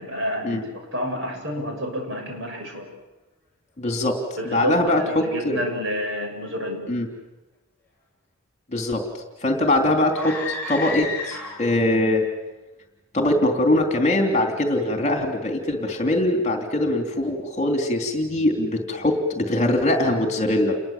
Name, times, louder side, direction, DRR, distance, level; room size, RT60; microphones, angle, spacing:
voice 1, 0.0-2.9 4.4-6.9, equal, 55° right, 3 dB, 6.9 m, -29 dB
voice 2, 3.8-4.2 4.5-5.6 6.9-7.1 8.7-9.0 9.4-12.3 13.1-20.7, left 1 dB, 30° left, 3 dB, 3.3 m, -22 dB
sound 1, 10.1-11.9, left 4 dB, 10° left, 7.0 m, -31 dB
29.0 x 22.0 x 7.4 m, 1.1 s
head